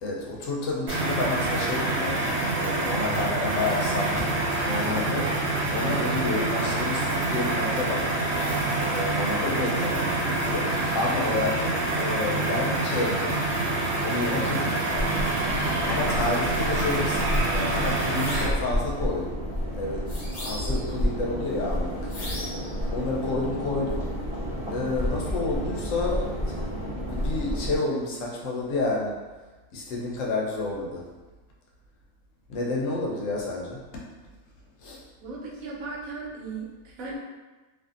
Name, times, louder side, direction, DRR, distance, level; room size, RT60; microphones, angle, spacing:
voice 1, 0.0-4.3 4.6-5.3 5.7-8.1 8.8-10.7 10.9-13.4 14.0-15.2 15.9-19.4 19.7-20.0 20.3-22.0 22.9-24.1 24.7-26.6 27.0-29.2 29.7-31.0 32.5-33.8 34.8-35.0, left 2 dB, 75° left, -2 dB, 0.9 m, -30 dB
sound 1, 0.9-18.5, right 2 dB, 60° right, 1.0 m, -26 dB
sound 2, 15.0-27.8, equal, 40° right, 0.5 m, -31 dB
sound 3, 18.1-18.6 20.1-20.9 22.1-22.7, left 1 dB, 45° left, 0.7 m, -37 dB
voice 2, 35.2-37.2, right 3 dB, 90° right, -3 dB, 1.1 m, -37 dB
2.5 x 2.5 x 2.4 m, 1.2 s
omnidirectional pair, 1.4 m